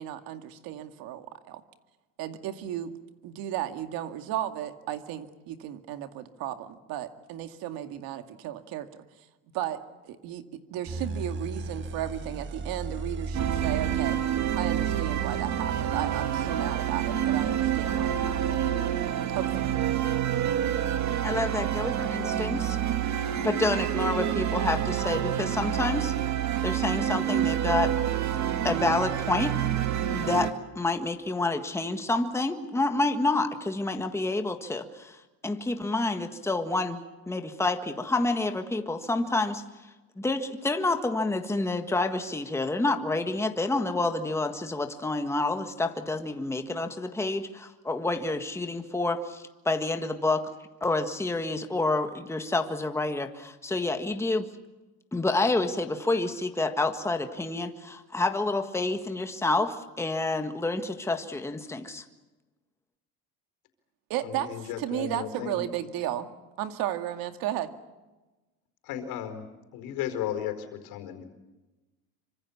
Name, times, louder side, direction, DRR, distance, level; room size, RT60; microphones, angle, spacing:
voice 1, 0.0-1.6 2.2-2.9 3.2-8.9 9.5-14.2 14.6-18.7 19.3-19.8 64.1-64.5 64.8-66.3 66.6-67.7, right 12 dB, 70° right, 7 dB, 2.2 m, -34 dB
sound 1, 10.9-20.0, right 3 dB, 30° right, 1.6 m, -38 dB
sound 2, 13.3-30.5, right 10 dB, 50° right, 2.0 m, -28 dB
voice 2, 21.2-22.8 23.4-26.1 26.6-27.9 28.6-29.6 30.1-37.0 37.3-39.6 40.2-50.4 50.8-54.5 55.1-62.0, left 2 dB, 5° left, 6 dB, 1.6 m, -28 dB
voice 3, 64.2-65.6 68.8-69.4 69.7-71.2, left 10 dB, 70° left, 8 dB, 4.7 m, -35 dB
26.5 x 25.0 x 7.2 m, 1.1 s
cardioid pair, 130°, 37 cm